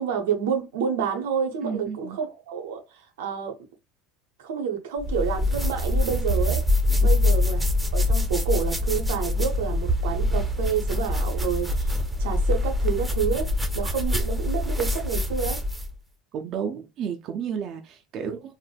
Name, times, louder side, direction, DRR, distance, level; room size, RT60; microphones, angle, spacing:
voice 1, 0.0-2.8 3.2-3.6 4.4-6.6 6.9-7.7 7.9-11.9 12.2-15.6, right 7 dB, 85° right, 0.7 m, -29 dB
voice 2, 1.6-2.2 7.0-7.2 16.3-18.5, right 7 dB, 50° right, 0.5 m, -32 dB
sound 1, 5.0-15.9, left 2 dB, 10° right, 0.7 m, -24 dB
3.3 x 2.0 x 2.3 m
hypercardioid pair, 85°, 0 cm